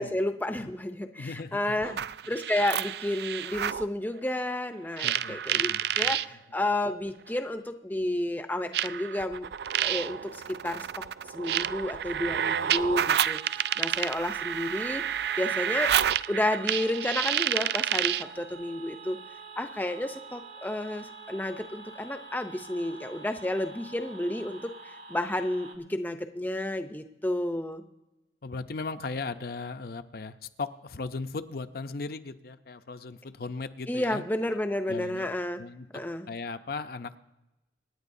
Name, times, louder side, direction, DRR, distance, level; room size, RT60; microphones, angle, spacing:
voice 1, 0.0-1.9 2.3-9.5 9.8-11.0 11.3-15.0 15.4-16.0 16.3-19.2 19.6-27.8 33.9-35.6 35.9-36.3, left 1 dB, 10° left, 8 dB, 0.6 m, -31 dB
voice 2, 1.2-2.1 5.0-6.1 28.4-34.2 34.9-35.3 35.6-35.9 36.3-37.2, left 4 dB, 60° left, 9 dB, 0.6 m, -37 dB
sound 1, 1.8-3.9 5.0-6.3 7.3-7.4 8.7-18.3, right 10 dB, 60° right, 0.3 m, -29 dB
sound 2, 12.6-25.8, right 6 dB, 85° right, 1.8 m, -46 dB
26.5 x 9.9 x 2.7 m, 0.95 s
head